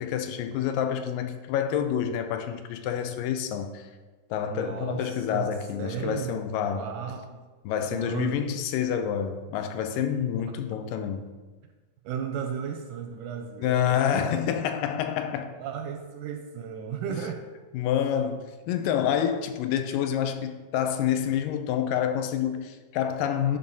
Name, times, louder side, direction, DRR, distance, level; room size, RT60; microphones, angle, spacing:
voice 1, 0.0-3.9 4.3-7.0 7.6-11.4 13.6-15.5 17.1-17.2 17.7-23.6, left 9 dB, 85° left, 2.3 m, -28 dB
voice 2, 4.5-5.5 5.8-6.4 6.7-7.4 7.9-8.5 11.0-11.1 12.0-14.3 15.6-17.4, right 7 dB, 80° right, 1.9 m, -34 dB
11.0 x 3.8 x 5.4 m
omnidirectional pair, 4.0 m